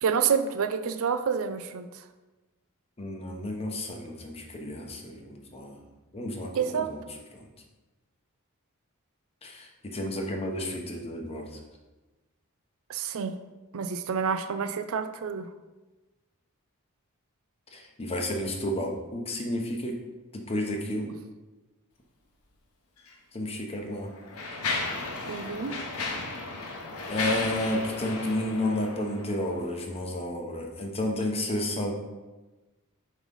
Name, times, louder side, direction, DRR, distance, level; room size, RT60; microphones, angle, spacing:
voice 1, 0.0-2.0 6.6-6.9 12.9-13.4 13.7-15.5 25.3-25.8, right 6 dB, 65° right, 9 dB, 0.4 m, -28 dB
voice 2, 3.0-5.8 6.1-7.0 7.3-7.5 9.4-11.5 17.7-19.9 20.3-21.1 23.3-24.1 27.1-31.9, left 1 dB, 25° left, 2 dB, 0.9 m, -31 dB
Mechanisms, 23.0-23.1 23.9-29.6, left 3 dB, 70° left, 1.0 m, -34 dB
7.3 x 3.2 x 5.3 m, 1.2 s
head